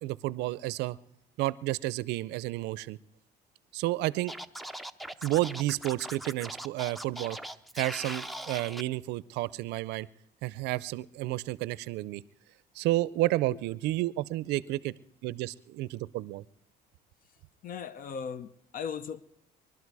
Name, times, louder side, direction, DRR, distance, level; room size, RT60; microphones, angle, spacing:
voice 1, 0.0-1.0 1.4-3.0 3.7-4.3 5.2-7.4 7.7-10.1 10.4-12.2 12.7-14.9 15.2-16.4, right 17 dB, 85° right, 0.5 m, -31 dB
Scratching (performance technique), 4.3-8.8, right 1 dB, ahead, 0.5 m, -40 dB
voice 2, 17.6-19.2, left 7 dB, 55° left, 0.6 m, -37 dB
23.0 x 12.0 x 4.8 m
cardioid pair, 110°, 17 cm